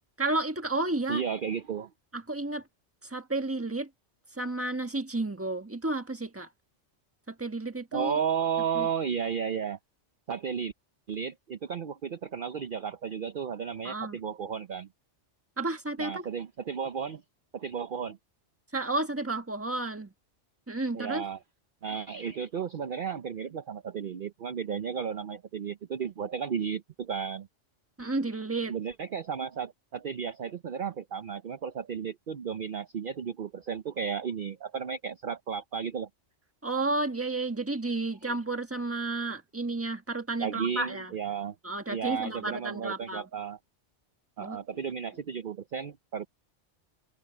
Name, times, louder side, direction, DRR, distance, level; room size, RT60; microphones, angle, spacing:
voice 1, 0.2-1.2 2.1-2.6 3.0-3.9 4.4-6.5 7.3-8.1 8.8-8.9 13.8-14.2 15.6-16.3 18.7-20.1 20.7-21.2 28.0-28.7 36.6-41.1 41.6-43.2 44.4-44.6, right 2 dB, 10° right, 1.3 m, -32 dB
voice 2, 1.1-1.9 7.9-9.8 10.3-10.7 11.1-14.9 16.0-17.2 17.5-18.2 20.9-21.4 21.8-27.5 28.7-36.1 38.2-38.3 40.4-41.6 41.9-43.6 44.4-46.3, right 7 dB, 50° right, 0.8 m, -33 dB
omnidirectional pair, 1.2 m